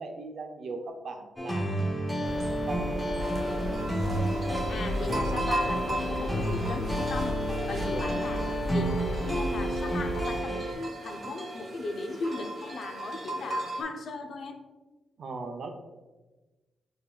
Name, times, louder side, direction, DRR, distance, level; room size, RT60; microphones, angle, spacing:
voice 1, 0.0-1.9 2.2-3.3 7.8-8.2 15.2-15.7, right 3 dB, 65° right, 4 dB, 0.6 m, -39 dB
sound 1, 1.4-10.7, equal, 10° left, 0.6 m, -31 dB
sound 2, 2.2-10.4, equal, 85° right, 1.3 m, -36 dB
sound 3, 3.2-13.8, right 1 dB, 45° right, 1.0 m, -37 dB
voice 2, 4.7-7.4 7.7-14.6, left 3 dB, 60° left, 5 dB, 0.5 m, -37 dB
7.1 x 2.8 x 2.3 m, 1.2 s
cardioid pair, 115°, 0 cm